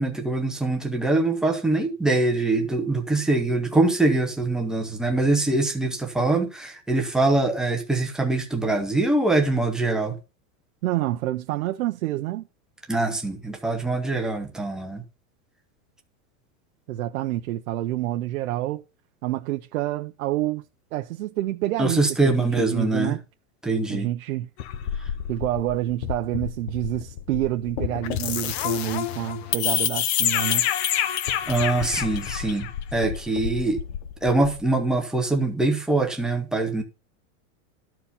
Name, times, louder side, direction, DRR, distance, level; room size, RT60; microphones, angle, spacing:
voice 1, 0.0-10.1 12.9-15.0 21.8-23.2 23.6-24.1 31.5-32.7 32.9-33.8 34.2-36.8, right 2 dB, ahead, 0.6 m, -23 dB
voice 2, 10.8-12.4 16.9-18.8 19.2-20.6 20.9-23.2 23.9-24.5 25.3-30.7, right 14 dB, 75° right, 0.8 m, -28 dB
sound 1, 24.6-34.6, left 10 dB, 45° left, 0.9 m, -28 dB
12.5 x 4.6 x 5.5 m
supercardioid pair, 170°, 42 cm